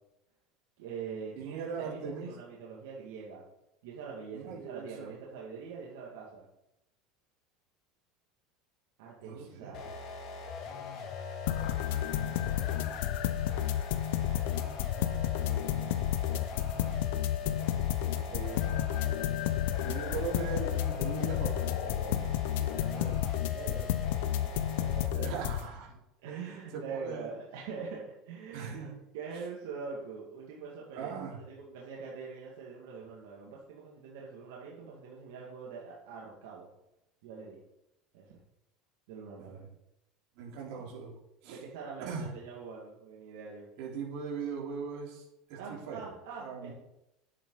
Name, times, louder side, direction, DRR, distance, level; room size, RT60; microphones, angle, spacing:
voice 1, 0.8-3.4 3.8-6.4 9.0-9.9 12.0-13.1 14.2-14.7 17.4-18.5 22.2-22.3 22.7-22.8 23.5-24.0 24.4-25.4 26.2-28.8 29.1-36.7 37.2-37.6 38.1-38.4 39.1-39.6 41.5-43.7 45.6-46.7, right 5 dB, 85° right, -4 dB, 2.3 m, -44 dB
voice 2, 1.4-2.3 4.3-5.1 9.2-9.9 15.4-16.2 18.1-18.6 19.8-22.3 22.9-23.2 25.2-25.9 26.3-27.3 28.5-29.0 30.9-31.4 39.4-39.6 40.3-41.1 41.4-41.6 42.0-42.3 43.8-46.1 46.4-46.7, right 6 dB, 60° right, -4 dB, 4.2 m, -40 dB
sound 1, 9.7-25.2, left 4 dB, 45° left, 1.8 m, -42 dB
sound 2, 11.5-25.6, left 11 dB, 80° left, 0.8 m, -31 dB
11.0 x 8.9 x 4.1 m, 0.88 s
cardioid pair, 160°, 0 cm